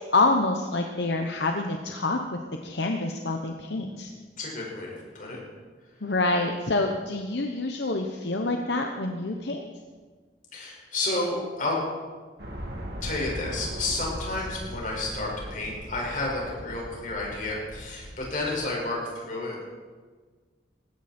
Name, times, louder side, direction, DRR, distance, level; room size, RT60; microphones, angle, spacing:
voice 1, 0.1-4.1 6.0-9.7, left 2 dB, 70° left, 3 dB, 1.1 m, -27 dB
voice 2, 4.4-5.4 10.5-11.8 13.0-19.6, left 2 dB, 45° left, -3 dB, 5.5 m, -31 dB
sound 1, 12.4-18.6, equal, 60° right, 2.9 m, -38 dB
20.0 x 16.0 x 4.5 m, 1.5 s
head